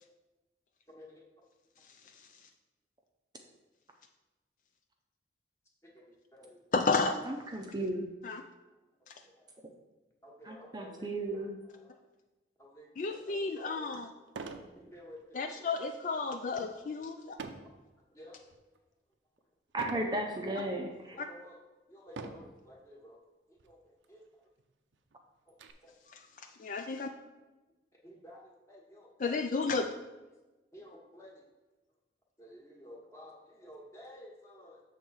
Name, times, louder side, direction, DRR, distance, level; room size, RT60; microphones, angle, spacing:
voice 1, 0.9-1.2 5.8-6.0 6.3-6.6 9.2-9.5 10.2-12.0 12.6-13.9 14.8-16.1 16.4-16.8 17.4-17.5 18.1-18.4 21.1-21.6 21.9-23.2 23.5-24.2 25.5-25.6 25.8-25.9 28.0-29.4 29.8-30.0 30.7-31.4 32.4-34.8, equal, 15° left, -2 dB, 1.2 m, -53 dB
voice 2, 6.7-7.1 8.2-8.4 9.1-9.2 13.0-14.1 15.3-17.4 21.2-21.3 26.1-27.1 29.2-29.9, left 4 dB, 45° left, 5 dB, 0.3 m, -32 dB
voice 3, 7.3-8.1 10.5-11.5 14.8-14.9 19.7-21.2, right 1 dB, 20° right, 2 dB, 0.6 m, -35 dB
sound 1, 13.3-13.4 14.3-14.7 15.2-15.5 17.4-17.8 18.4-18.8 19.8-20.1 20.9-21.0 22.1-22.6 23.6-23.7 24.0-24.1 24.6-25.7, right 4 dB, 90° right, 0.6 m, -43 dB
7.0 x 3.7 x 6.3 m, 1.1 s
head